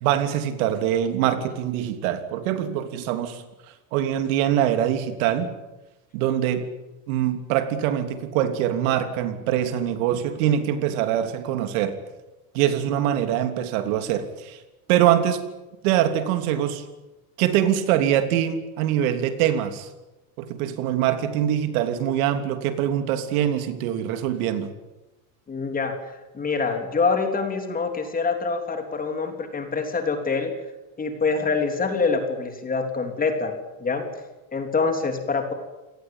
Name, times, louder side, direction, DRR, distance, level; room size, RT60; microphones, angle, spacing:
voice 1, 0.0-3.4 3.9-5.5 6.1-6.7 7.1-12.0 12.5-14.6 14.9-15.4 15.8-16.8 17.4-19.9 20.4-24.7, right 10 dB, 80° right, 9 dB, 3.2 m, -23 dB
voice 2, 25.5-30.5 31.0-33.5 33.8-34.0 34.5-35.5, left 4 dB, 20° left, 6 dB, 3.4 m, -25 dB
28.0 x 18.5 x 9.1 m, 1.0 s
cardioid pair, 145°, 42 cm